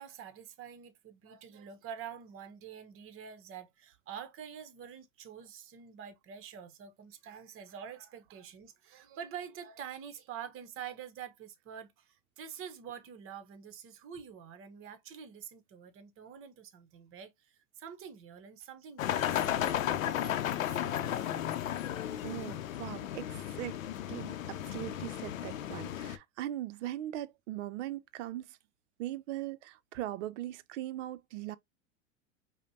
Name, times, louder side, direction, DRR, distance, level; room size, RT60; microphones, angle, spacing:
voice 1, 0.0-21.6, right 8 dB, 35° right, 0.9 m, -47 dB
sound 1, 19.0-26.2, left 11 dB, 90° left, 0.6 m, -34 dB
voice 2, 22.2-23.8 24.1-28.6 29.0-31.6, right 14 dB, 65° right, 0.6 m, -40 dB
5.0 x 2.2 x 2.7 m
hypercardioid pair, 110°, 39 cm